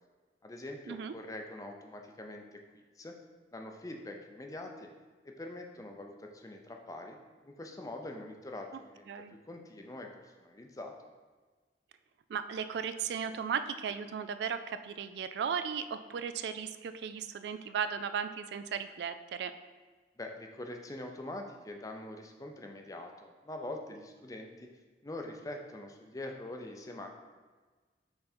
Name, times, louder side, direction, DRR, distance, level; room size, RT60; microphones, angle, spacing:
voice 1, 0.4-3.1 3.5-4.9 5.2-11.0 20.2-24.7 25.0-27.1, left 1 dB, 20° left, 3 dB, 0.5 m, -44 dB
voice 2, 12.3-19.5, right 7 dB, 70° right, 11 dB, 0.3 m, -36 dB
5.7 x 3.8 x 4.2 m, 1.4 s
head